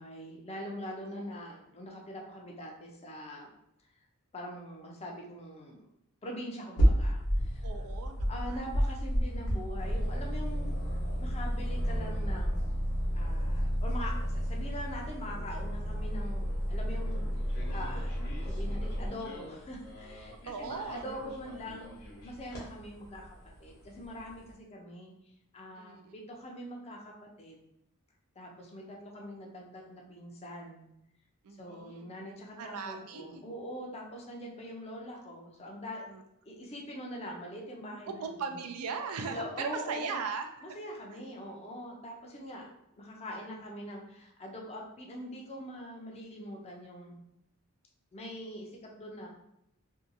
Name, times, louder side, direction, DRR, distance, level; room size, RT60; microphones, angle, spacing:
voice 1, 0.0-3.5 4.3-5.9 6.2-7.7 8.3-10.8 11.2-12.7 13.1-17.3 17.7-18.2 18.5-21.9 22.2-25.1 25.5-27.6 28.4-30.8 31.6-36.1 36.5-38.6 39.3-40.2 40.6-42.7 43.0-47.2 48.1-49.3, equal, 30° left, 0 dB, 0.5 m, -43 dB
sound 1, 6.8-24.5, equal, 65° left, 0.9 m, -35 dB
voice 2, 7.6-8.6 20.5-21.0 25.8-26.2 31.4-32.1 32.6-33.4 36.1-36.2 38.2-40.5, right 5 dB, 80° right, 6 dB, 0.4 m, -38 dB
Aircraft, 9.8-19.1, equal, 50° right, 0.8 m, -33 dB
2.7 x 2.3 x 2.5 m, 0.81 s
head